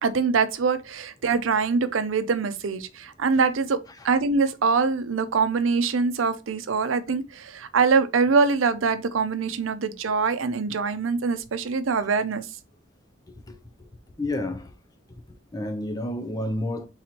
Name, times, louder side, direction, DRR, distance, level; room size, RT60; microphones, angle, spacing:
voice 1, 0.0-3.8 4.0-12.5, right 5 dB, 85° right, 0.5 m, -24 dB
voice 2, 13.3-13.9 14.2-14.7 15.1-16.9, left 1 dB, 20° left, 0.4 m, -31 dB
3.9 x 3.0 x 4.3 m
head